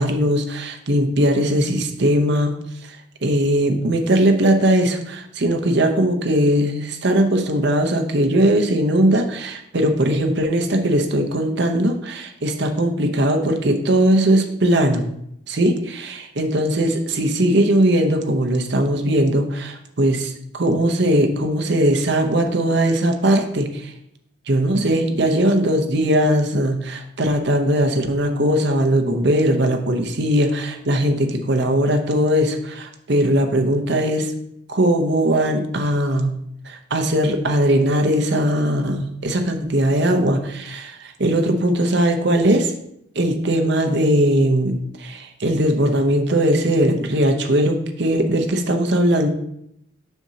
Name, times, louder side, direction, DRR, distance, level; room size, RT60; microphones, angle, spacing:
voice 1, 0.0-2.6 2.8-3.0 3.2-15.1 15.5-23.9 24.5-34.3 34.7-36.4 36.6-42.7 43.1-49.3, right 1 dB, 55° right, 4 dB, 0.8 m, -19 dB
6.9 x 6.2 x 2.8 m, 0.76 s
head